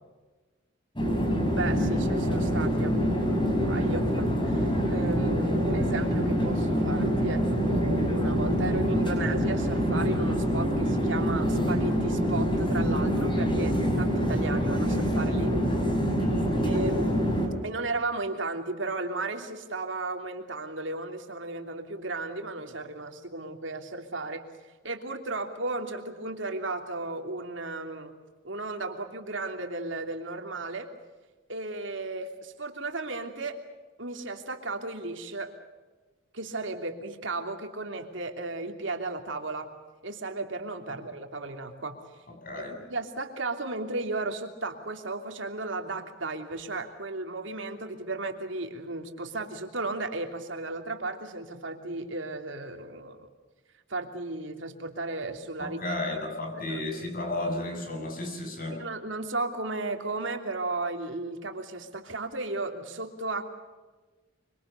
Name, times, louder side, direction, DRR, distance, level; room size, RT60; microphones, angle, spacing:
sound 1, 1.0-17.5, equal, 25° left, 6.2 m, -26 dB
voice 1, 1.5-15.9 16.6-17.2 17.6-24.4 24.8-28.1 28.4-30.9 31.5-33.6 34.0-35.6 36.3-39.7 40.0-42.0 42.6-42.7 42.9-53.3 53.9-55.8 56.7-56.8 58.8-63.5, right 2 dB, 70° right, 4 dB, 3.1 m, -35 dB
voice 2, 16.2-17.1 40.9-41.0 42.3-42.8 55.6-58.8, left 2 dB, 45° left, 3 dB, 7.7 m, -34 dB
26.0 x 25.5 x 7.0 m, 1.3 s
head